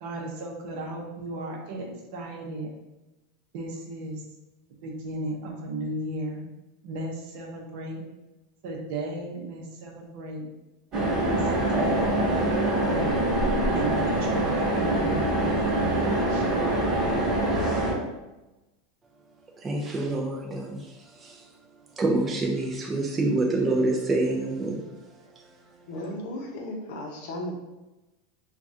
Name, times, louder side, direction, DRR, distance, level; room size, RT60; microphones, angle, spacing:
voice 1, 0.0-2.7 3.5-4.2 4.8-6.5 6.8-8.0 8.6-10.5 11.2-12.2 12.8-13.0 13.7-16.0 16.3-16.5, right 1 dB, 50° right, -1 dB, 0.7 m, -35 dB
sound 1, 10.9-17.9, right 1 dB, 30° right, 1.1 m, -24 dB
voice 2, 19.6-20.9 21.2-21.4 22.0-24.8, right 2 dB, 10° right, -1 dB, 0.4 m, -26 dB
voice 3, 25.9-27.6, left 1 dB, 50° left, 0 dB, 0.7 m, -35 dB
4.6 x 2.3 x 2.6 m, 1.0 s
supercardioid pair, 175°, 0 cm